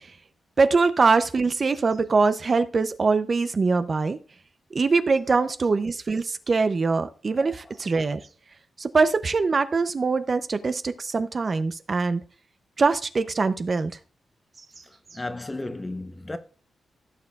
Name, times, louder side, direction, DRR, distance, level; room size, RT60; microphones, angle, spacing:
voice 1, 0.6-4.2 4.7-8.2 8.8-12.2 12.8-13.9, right 4 dB, 40° right, 0.6 m, -23 dB
voice 2, 14.8-16.4, left 2 dB, 20° left, 0.8 m, -35 dB
15.5 x 6.7 x 2.4 m
wide cardioid pair, 105°, 0 cm